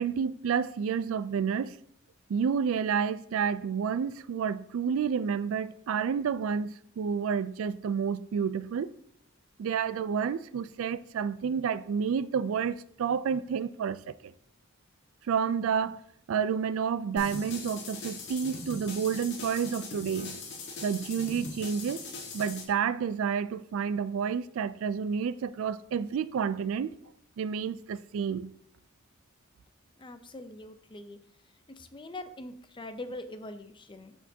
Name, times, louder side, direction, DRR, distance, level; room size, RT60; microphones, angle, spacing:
voice 1, 0.0-1.8 2.3-8.9 9.6-14.1 15.3-16.0 16.3-20.4 20.8-22.0 22.3-26.9 27.4-28.5, right 7 dB, 70° right, 0.3 m, -30 dB
sound 1, 17.2-22.6, left 3 dB, 60° left, 1.5 m, -41 dB
voice 2, 30.0-31.2 31.8-34.1, left 1 dB, 25° left, 0.5 m, -43 dB
13.0 x 4.5 x 2.7 m
head